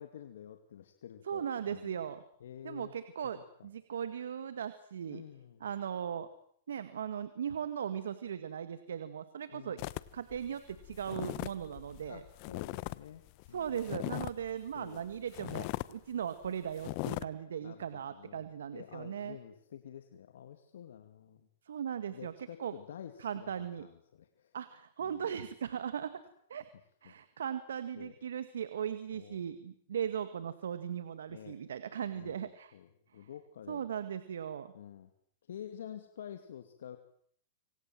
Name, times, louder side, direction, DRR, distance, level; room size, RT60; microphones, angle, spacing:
voice 1, 0.0-2.0 2.4-2.9 3.2-3.7 5.1-5.7 9.5-9.9 12.0-13.2 13.5-13.8 14.7-15.1 17.6-21.5 22.1-24.5 25.0-25.3 27.0-27.1 28.0-28.1 29.1-29.4 31.3-31.7 32.1-33.8 34.7-35.1 35.5-37.0, left 9 dB, 80° left, 7 dB, 2.4 m, -49 dB
voice 2, 1.3-2.2 2.6-5.2 5.6-6.3 6.7-9.8 10.1-12.2 13.5-19.4 21.7-22.3 22.6-22.7 23.2-23.9 24.5-26.2 26.5-26.7 27.0-32.7 33.7-34.7, right 8 dB, 85° right, 12 dB, 1.9 m, -38 dB
sound 1, 9.8-13.0 13.3-14.5 14.9-15.0 15.3-15.9 16.3-16.5 16.8-17.2, left 23 dB, 50° left, 1.1 m, -39 dB
26.5 x 26.0 x 7.7 m, 0.64 s
hypercardioid pair, 120°, 0 cm